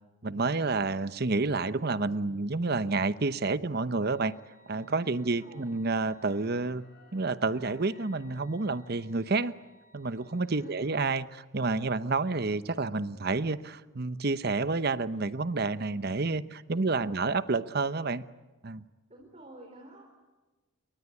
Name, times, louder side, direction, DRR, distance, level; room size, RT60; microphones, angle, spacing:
voice 1, 0.2-4.3 4.7-6.8 7.1-9.5 9.9-18.3 18.6-18.8, right 3 dB, 50° right, 14 dB, 0.9 m, -29 dB
sound 1, 4.0-11.1, left 2 dB, 45° left, 8.0 m, -61 dB
voice 2, 5.2-5.8 10.5-10.8 16.8-17.4 19.1-20.1, right 2 dB, 30° right, 1 dB, 4.5 m, -50 dB
29.0 x 23.0 x 8.4 m, 1.2 s
head